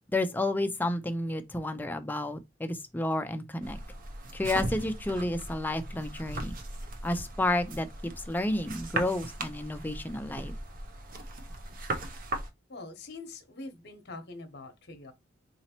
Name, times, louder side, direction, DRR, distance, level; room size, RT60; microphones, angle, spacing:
voice 1, 0.1-3.8 4.3-6.5 7.0-10.5, left 1 dB, 10° left, 0.4 m, -31 dB
sound 1, 3.6-12.5, right 2 dB, 45° right, 0.6 m, -38 dB
voice 2, 12.7-15.1, left 3 dB, 55° left, 0.9 m, -44 dB
4.0 x 2.9 x 2.9 m
head